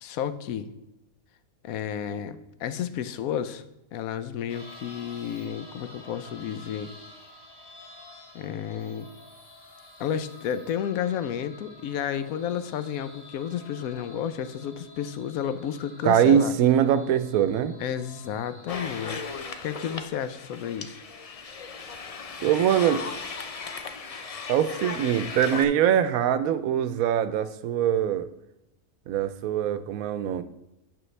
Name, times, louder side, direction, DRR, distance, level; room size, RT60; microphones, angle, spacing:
voice 1, 0.0-0.7 1.6-3.6 3.9-6.9 8.3-9.1 10.0-16.5 17.8-19.2 19.6-21.0, left 9 dB, 85° left, 12 dB, 1.0 m, -31 dB
sound 1, 4.5-20.0, left 2 dB, 20° left, 0.8 m, -50 dB
voice 2, 16.0-17.7 22.4-23.0 24.5-28.3 29.1-30.4, right 9 dB, 85° right, 12 dB, 1.0 m, -23 dB
sound 2, 18.7-25.7, left 4 dB, 60° left, 0.3 m, -37 dB
9.1 x 6.2 x 3.2 m, 0.92 s
omnidirectional pair, 1.4 m